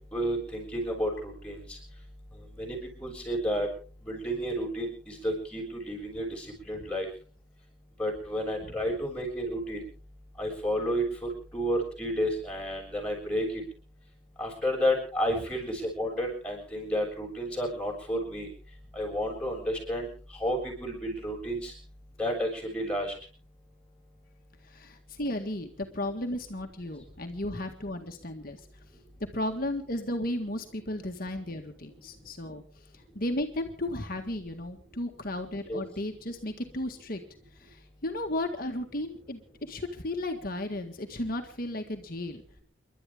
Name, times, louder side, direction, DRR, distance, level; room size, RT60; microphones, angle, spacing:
voice 1, 0.1-1.6 2.6-3.7 4.1-7.1 8.0-9.8 10.4-13.5 14.4-18.5 18.9-20.1 20.4-21.7 22.2-23.1 35.7-35.8, equal, 5° left, -2 dB, 6.9 m, -31 dB
voice 2, 24.6-28.6 29.3-32.6 33.2-37.2 37.6-42.4, left 1 dB, 50° left, 4 dB, 1.8 m, -34 dB
29.5 x 12.0 x 3.7 m, 0.40 s
head